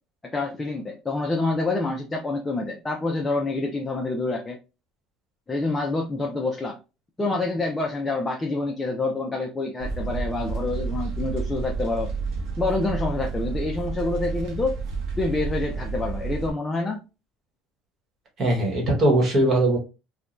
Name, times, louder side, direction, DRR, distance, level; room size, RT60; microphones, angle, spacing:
voice 1, 0.3-4.6 5.5-6.8 7.2-12.1 12.6-14.8 15.2-17.0, left 3 dB, 15° left, 0.4 m, -27 dB
sound 1, 9.8-16.5, right 4 dB, 65° right, 0.8 m, -30 dB
voice 2, 18.4-19.8, right 1 dB, 35° right, 1.1 m, -20 dB
3.1 x 2.2 x 2.5 m
cardioid pair, 155°, 0 cm